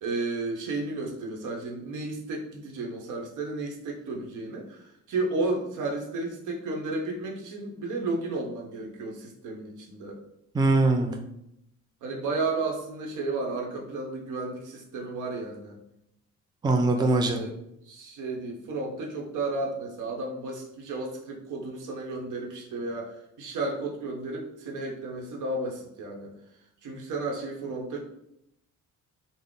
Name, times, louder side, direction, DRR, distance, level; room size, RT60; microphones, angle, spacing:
voice 1, 0.0-10.2 12.0-15.8 16.9-17.5 17.8-23.1 23.4-26.3 26.8-28.0, right 3 dB, 80° right, 0 dB, 0.9 m, -33 dB
voice 2, 10.5-11.2 16.6-17.4, right 2 dB, 15° right, 3 dB, 0.4 m, -22 dB
3.7 x 2.0 x 3.6 m, 0.80 s
cardioid pair, 90°, 30 cm